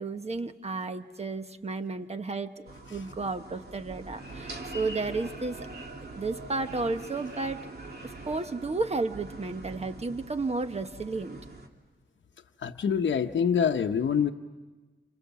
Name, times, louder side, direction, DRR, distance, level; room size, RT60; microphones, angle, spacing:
voice 1, 0.0-5.7 6.1-7.6 8.0-11.4, right 3 dB, 35° right, 8 dB, 1.2 m, -32 dB
sound 1, 2.7-11.7, right 2 dB, 55° right, 2.7 m, -43 dB
voice 2, 12.6-14.3, left 7 dB, 85° left, 3 dB, 0.9 m, -25 dB
29.0 x 28.5 x 7.2 m, 1.3 s
wide cardioid pair, 120°, 19 cm